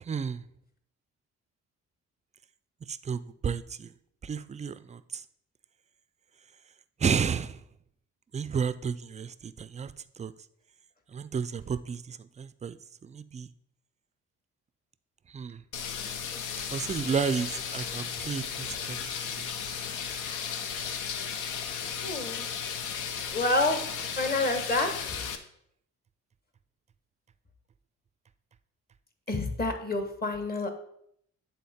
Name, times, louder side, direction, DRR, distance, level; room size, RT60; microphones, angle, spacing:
voice 1, 0.1-0.4 2.9-3.9 4.2-5.2 7.0-7.6 8.3-9.9 10.2-10.3 11.1-12.8 13.0-13.5 15.3-15.6 16.7-19.1 19.4-19.5, right 6 dB, 25° right, 15 dB, 0.3 m, -32 dB
sound 1, 15.7-25.4, left 7 dB, 85° left, 0.7 m, -35 dB
voice 2, 22.0-22.5 23.3-23.8 24.2-24.9 29.3-30.7, left 2 dB, 30° left, 7 dB, 1.2 m, -28 dB
8.2 x 3.8 x 4.2 m, 0.71 s
cardioid pair, 90°, 30 cm